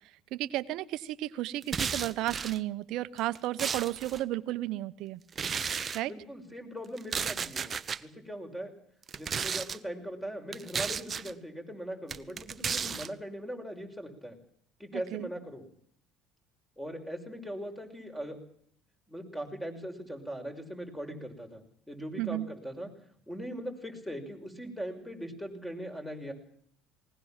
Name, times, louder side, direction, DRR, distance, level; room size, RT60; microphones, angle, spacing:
voice 1, 0.3-5.2 5.9-6.1 14.9-15.3 22.2-22.5, right 15 dB, 65° right, 15 dB, 1.0 m, -33 dB
sound 1, 1.6-2.6 3.2-4.2 5.3-6.0 7.0-8.0 9.0-9.8 10.5-11.3 12.1-13.1, right 6 dB, 35° right, 1.0 m, -33 dB
voice 2, 6.1-8.7 9.1-14.4 14.8-15.6 16.8-18.4 19.1-22.9 23.3-26.3, equal, 5° left, 5 dB, 6.0 m, -40 dB
20.0 x 19.5 x 7.5 m, 0.66 s
hypercardioid pair, 70°, 0 cm